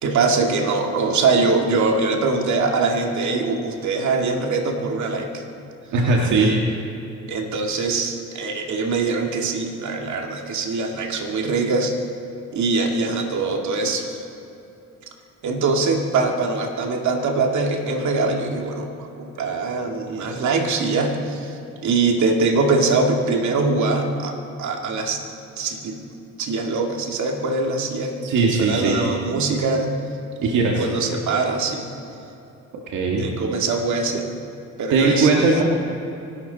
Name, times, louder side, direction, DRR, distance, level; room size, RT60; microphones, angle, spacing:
voice 1, 0.0-5.4 7.3-11.9 12.5-14.2 15.4-25.2 25.6-26.0 26.4-30.0 30.5-31.9 33.2-34.3 34.8-35.3, right 3 dB, 70° right, 2 dB, 2.3 m, -23 dB
voice 2, 5.9-6.8 28.2-29.0 30.4-30.8 32.9-33.3 34.9-35.6, right 3 dB, 85° right, -1 dB, 1.9 m, -19 dB
25.0 x 12.5 x 4.2 m, 2.8 s
cardioid pair, 90°, 30 cm